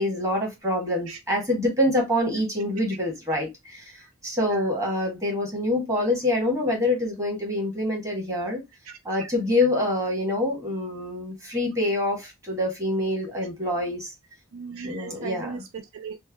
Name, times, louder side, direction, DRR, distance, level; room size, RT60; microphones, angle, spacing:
voice 1, 0.0-8.6 9.0-14.1 14.8-15.5, left 1 dB, 15° right, 1.2 m, -26 dB
voice 2, 4.4-4.8 8.9-9.3 14.5-16.2, right 5 dB, 70° right, 0.4 m, -38 dB
3.2 x 2.1 x 3.3 m
head